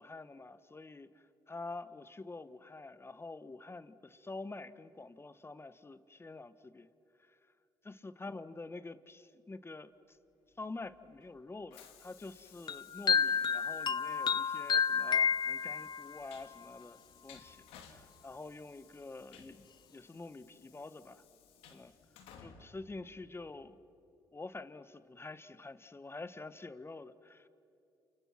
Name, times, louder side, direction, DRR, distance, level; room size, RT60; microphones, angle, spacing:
voice 1, 0.0-6.9 7.2-7.4 7.8-10.2 10.6-21.2 21.7-21.9 22.4-23.8 24.3-27.5, left 3 dB, 25° left, 13 dB, 1.5 m, -47 dB
Train, 10.6-23.7, left 7 dB, 80° left, 2.5 m, -60 dB
sound 1, 12.7-16.2, left 6 dB, 45° left, 0.9 m, -30 dB
30.0 x 28.5 x 6.0 m, 2.9 s
hypercardioid pair, 55°, 10 cm